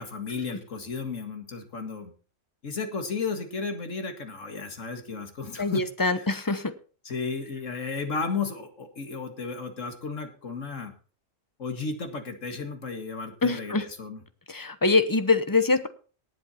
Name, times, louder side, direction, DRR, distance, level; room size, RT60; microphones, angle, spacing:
voice 1, 0.0-2.1 2.6-6.3 7.0-10.9 11.6-14.2, left 4 dB, 80° left, 6 dB, 2.3 m, -34 dB
voice 2, 5.6-6.7 13.4-13.8 14.5-15.9, left 3 dB, 20° left, 11 dB, 0.9 m, -24 dB
18.0 x 8.0 x 4.3 m, 0.38 s
omnidirectional pair, 1.3 m